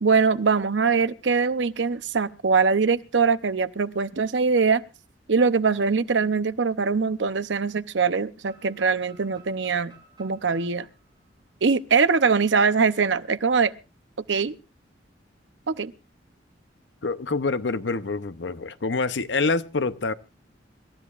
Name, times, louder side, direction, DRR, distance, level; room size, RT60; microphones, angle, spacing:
voice 1, 0.0-4.8 5.3-9.9 10.2-10.9 11.6-13.7 14.3-14.6 15.7-15.9, right 5 dB, 75° right, 0.7 m, -22 dB
sound 1, 8.4-12.3, right 4 dB, 25° right, 6.8 m, -56 dB
voice 2, 17.0-20.1, left 3 dB, 70° left, 0.8 m, -26 dB
26.0 x 13.0 x 2.5 m
head